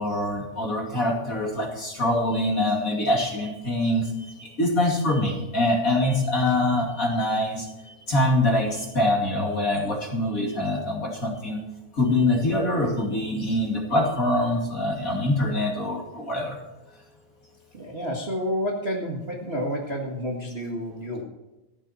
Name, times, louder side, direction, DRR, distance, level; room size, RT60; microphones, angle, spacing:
voice 1, 0.0-11.6 11.9-16.6, left 1 dB, 30° left, 0 dB, 2.0 m, -24 dB
voice 2, 17.7-21.2, equal, 70° right, -1 dB, 0.5 m, -30 dB
14.5 x 11.5 x 4.4 m, 1.0 s
omnidirectional pair, 4.4 m